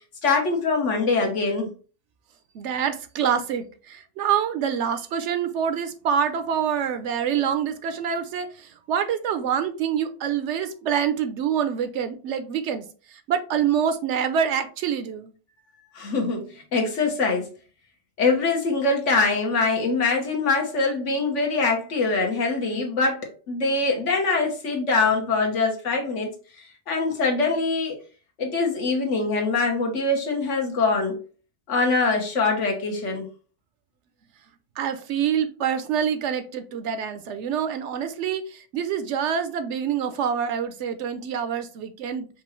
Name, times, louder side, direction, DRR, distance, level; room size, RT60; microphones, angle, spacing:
voice 1, 0.2-1.7 15.9-17.5 18.2-26.3 26.9-28.0 28.4-31.2 31.7-33.3, left 3 dB, 75° left, 1.4 m, -23 dB
voice 2, 2.5-15.3 34.8-42.3, right 8 dB, 75° right, 0.9 m, -26 dB
5.2 x 2.4 x 3.1 m
omnidirectional pair, 1.2 m